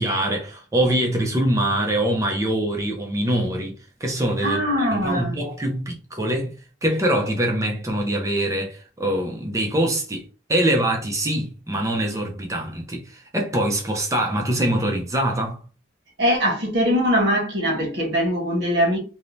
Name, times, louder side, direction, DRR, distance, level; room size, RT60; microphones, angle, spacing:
voice 1, 0.0-4.6 4.9-15.6, right 1 dB, 15° right, 0.4 m, -24 dB
voice 2, 4.4-5.4 16.2-19.0, equal, 70° right, 0.9 m, -21 dB
2.6 x 2.0 x 3.1 m
head